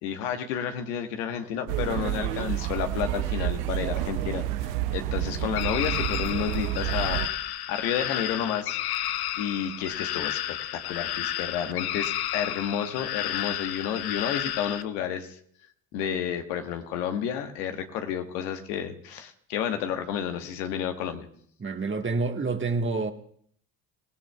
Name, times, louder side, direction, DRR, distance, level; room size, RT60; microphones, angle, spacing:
voice 1, 0.0-8.8 9.4-15.4 15.9-21.3, left 9 dB, 80° left, 1.3 m, -31 dB
sound 1, 1.7-7.3, right 13 dB, 85° right, 0.7 m, -29 dB
sound 2, 5.5-14.8, left 12 dB, 55° left, 0.8 m, -32 dB
voice 2, 21.6-23.1, right 3 dB, 25° right, 1.4 m, -28 dB
24.5 x 17.0 x 2.3 m
hypercardioid pair, 60°, 46 cm